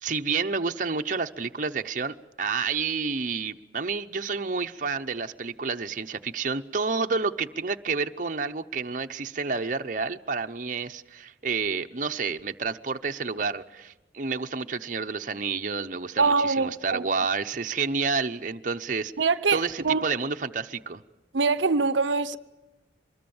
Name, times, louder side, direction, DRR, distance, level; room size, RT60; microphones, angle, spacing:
voice 1, 0.0-19.1 19.5-21.0, right 4 dB, 45° right, 0.8 m, -29 dB
voice 2, 16.2-17.3 19.2-20.1 21.3-22.4, right 4 dB, 80° right, 0.7 m, -24 dB
24.5 x 21.5 x 7.1 m
head